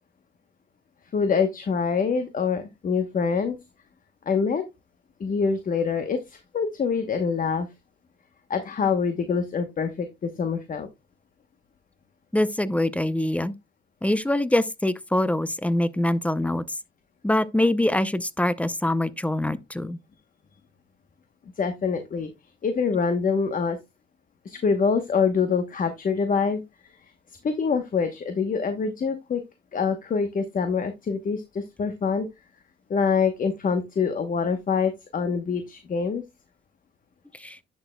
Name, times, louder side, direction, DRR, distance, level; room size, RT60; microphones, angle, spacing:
voice 1, 1.1-3.6 4.3-4.6 5.2-7.7 8.5-10.9 21.6-22.3 22.6-23.8 24.4-26.6 27.4-29.4 29.7-32.3 32.9-36.2, left 5 dB, 45° left, 1.0 m, -25 dB
voice 2, 12.3-13.5 14.0-16.6 17.2-20.0 37.4-37.6, left 1 dB, 5° left, 0.6 m, -24 dB
10.5 x 6.3 x 2.2 m
cardioid pair, 90°, 20 cm